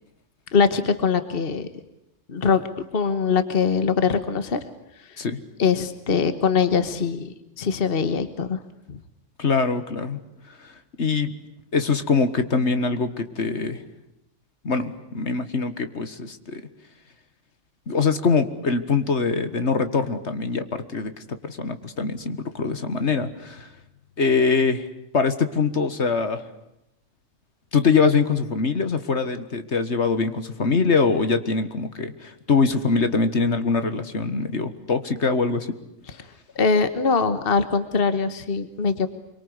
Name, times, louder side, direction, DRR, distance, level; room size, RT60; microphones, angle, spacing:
voice 1, 0.5-1.7 2.3-2.6 2.9-4.6 5.0-5.2 5.6-8.6 8.9-9.0 36.5-39.1, left 5 dB, 50° left, 11 dB, 1.5 m, -22 dB
voice 2, 9.4-10.2 10.6-11.3 11.7-13.8 14.6-16.6 17.9-23.7 24.2-24.9 25.1-26.4 27.7-35.8, left 4 dB, 65° left, 10 dB, 1.9 m, -23 dB
26.0 x 24.0 x 9.7 m, 0.85 s
omnidirectional pair, 1.2 m